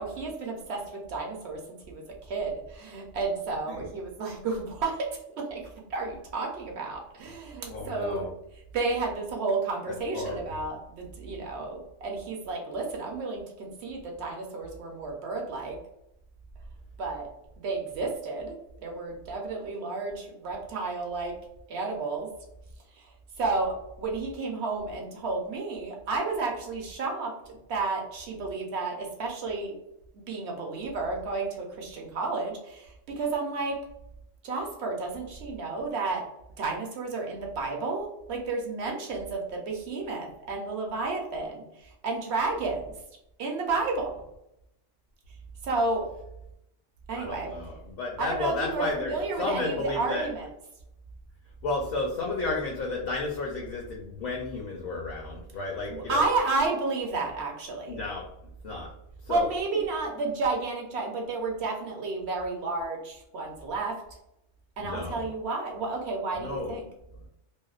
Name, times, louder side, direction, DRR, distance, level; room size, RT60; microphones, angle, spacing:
voice 1, 0.0-1.6 1.9-5.1 5.4-5.6 5.9-8.3 8.7-15.8 17.0-17.3 17.6-18.6 18.8-21.3 21.7-22.3 23.0-23.1 23.4-29.7 30.1-33.8 34.4-36.2 36.6-42.9 43.4-44.1 45.6-46.1 47.1-47.5 48.2-50.5 55.9-58.0 59.3-64.0 64.8-66.8, right 3 dB, 65° right, 0 dB, 0.8 m, -31 dB
voice 2, 7.7-8.3 9.9-10.4 47.1-50.3 51.6-56.2 57.9-58.2 58.6-58.9 59.2-59.5 64.8-65.3 66.3-66.8, left 3 dB, 60° left, -1 dB, 0.6 m, -32 dB
2.6 x 2.1 x 2.3 m, 0.81 s
omnidirectional pair, 1.3 m